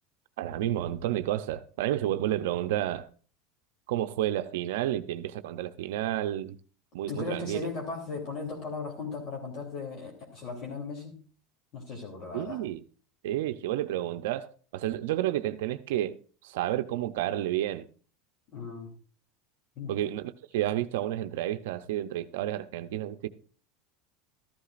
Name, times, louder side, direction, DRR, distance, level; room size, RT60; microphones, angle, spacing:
voice 1, 0.4-3.1 3.9-6.6 6.9-7.6 12.3-12.8 13.2-17.9 19.9-23.3, right 13 dB, 80° right, 0.6 m, -31 dB
voice 2, 7.1-11.2 11.7-12.6 18.5-18.9 19.8-19.9, left 4 dB, 50° left, 3.1 m, -37 dB
13.5 x 11.5 x 2.5 m
supercardioid pair, 125°, 0 cm